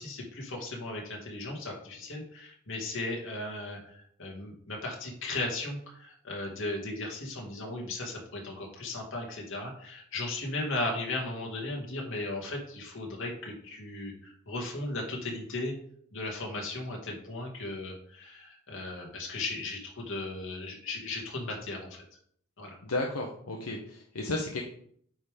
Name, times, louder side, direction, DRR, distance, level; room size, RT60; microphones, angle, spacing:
voice 1, 0.0-15.7 16.1-22.0 22.6-22.8, left 2 dB, 60° left, 0 dB, 2.1 m, -36 dB
voice 2, 22.8-24.6, left 2 dB, 80° left, 0 dB, 0.9 m, -33 dB
8.7 x 3.7 x 5.0 m, 0.64 s
head